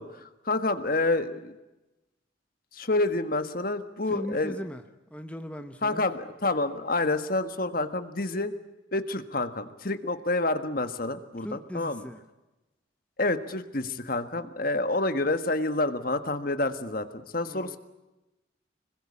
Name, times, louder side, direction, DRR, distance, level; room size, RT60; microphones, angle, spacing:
voice 1, 0.0-1.5 2.7-4.5 5.8-8.5 8.9-12.0 13.2-17.8, left 2 dB, 45° left, 10 dB, 1.6 m, -28 dB
voice 2, 4.1-4.8 5.1-6.0 11.4-12.2 17.5-17.8, equal, 5° left, 6 dB, 1.1 m, -38 dB
26.0 x 21.5 x 8.6 m, 1.0 s
head